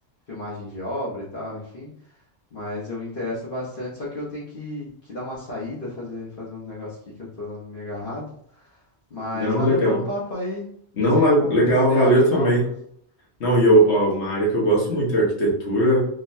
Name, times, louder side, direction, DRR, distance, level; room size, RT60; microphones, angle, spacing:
voice 1, 0.3-1.9 2.5-8.8 9.1-10.7 11.0-12.7, left 1 dB, 55° left, -7 dB, 0.9 m, -32 dB
voice 2, 9.3-10.0 11.0-12.6 13.4-16.1, equal, 75° left, -4 dB, 1.3 m, -19 dB
3.8 x 2.1 x 2.6 m, 0.66 s
omnidirectional pair, 1.1 m